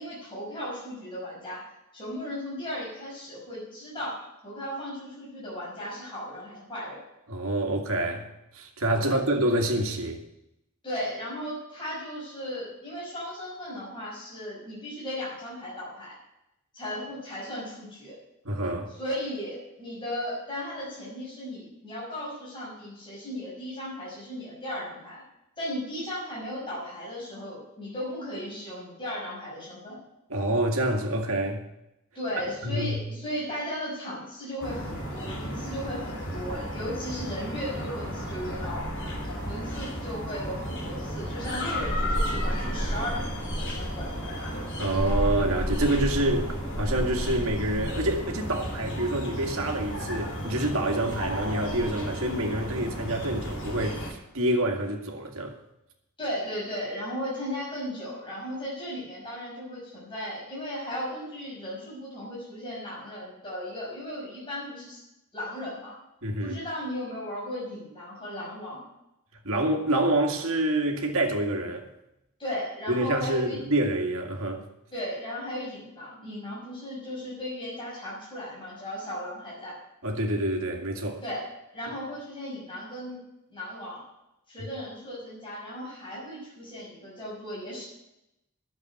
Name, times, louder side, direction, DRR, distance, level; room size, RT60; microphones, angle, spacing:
voice 1, 0.0-1.7 1.9-7.0 8.9-9.2 10.8-16.2 16.7-18.2 19.0-25.2 25.6-30.0 32.1-38.9 39.4-44.1 56.2-65.0 65.3-65.9 66.4-68.8 72.4-73.6 74.9-79.8 81.2-81.5 81.7-83.2 83.5-84.0 84.5-87.9, equal, 25° left, 5.9 m, -36 dB
voice 2, 7.3-8.3 8.5-10.2 18.4-18.9 30.3-31.6 32.6-33.0 44.8-55.6 66.2-66.6 69.4-71.9 72.9-74.6 80.0-81.2 84.6-84.7, right 1 dB, 65° right, 2.2 m, -27 dB
sound 1, 34.6-54.1, equal, 55° left, 3.3 m, -32 dB
11.0 x 7.6 x 9.4 m
head